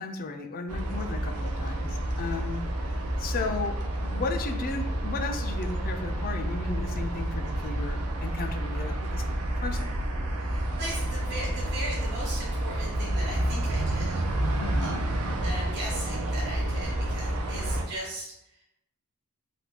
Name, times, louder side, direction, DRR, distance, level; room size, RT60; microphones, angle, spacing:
voice 1, 0.0-3.8 4.0-9.2 9.6-10.0 14.6-15.0 16.7-16.8, left 4 dB, 40° left, 6 dB, 0.3 m, -35 dB
sound 1, 0.7-17.9, right 1 dB, 90° right, 0.5 m, -29 dB
voice 2, 10.4-14.9 15.4-18.6, right 1 dB, 50° right, -6 dB, 1.2 m, -38 dB
3.3 x 2.2 x 2.8 m, 0.82 s
head